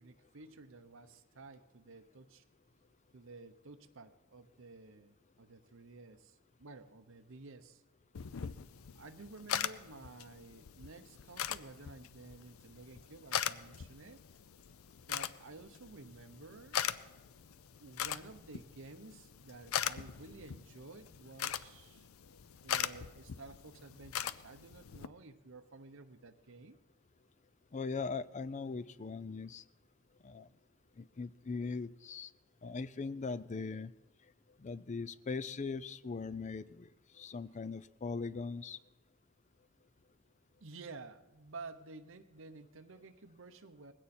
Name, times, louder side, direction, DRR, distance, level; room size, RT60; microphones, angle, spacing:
voice 1, 0.0-2.4 3.1-7.8 8.9-14.2 15.1-16.8 17.8-22.1 22.6-26.8 40.6-43.9, right 3 dB, 65° right, 7 dB, 0.9 m, -52 dB
sound 1, 8.1-25.1, left 9 dB, 85° left, 0.6 m, -41 dB
voice 2, 27.7-29.6 30.2-30.5 31.0-32.3 32.6-33.9 34.6-36.9 37.2-38.8, left 4 dB, 35° left, 16 dB, 0.5 m, -40 dB
20.0 x 16.5 x 4.3 m, 1.1 s
head